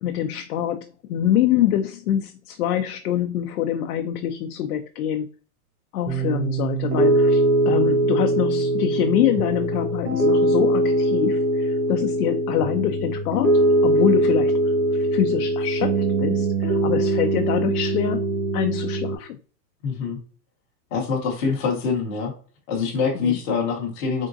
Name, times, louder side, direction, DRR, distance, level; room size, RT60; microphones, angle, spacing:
voice 1, 0.0-5.3 5.9-14.6 14.9-19.4 23.1-23.4, left 11 dB, 75° left, 0.6 m, -25 dB
Piano, 6.1-19.2, right 1 dB, 80° right, 1.2 m, -21 dB
voice 2, 19.8-20.2 20.9-22.3 22.7-24.3, left 5 dB, 20° left, 0.6 m, -25 dB
3.8 x 3.6 x 2.6 m
supercardioid pair, 170°, 46 cm